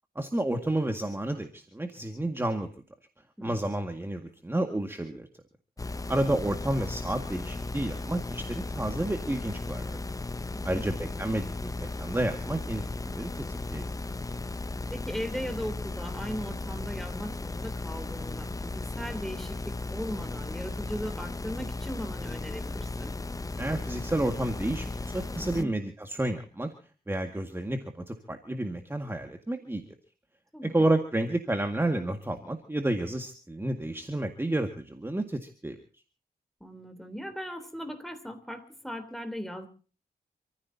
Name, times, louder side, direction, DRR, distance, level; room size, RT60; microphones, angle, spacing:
voice 1, 0.2-2.7 3.4-5.3 6.1-10.0 10.6-13.8 23.6-26.7 27.1-29.8 30.6-35.8, right 1 dB, 15° right, 5 dB, 1.9 m, -30 dB
voice 2, 3.4-3.8 10.5-10.9 14.9-23.1 25.4-25.7 30.5-30.8 36.6-39.7, equal, ahead, 8 dB, 3.5 m, -38 dB
sound 1, 5.8-25.6, left 2 dB, 20° left, 0.8 m, -36 dB
28.5 x 15.0 x 2.8 m, 0.38 s
wide cardioid pair, 90°, 16 cm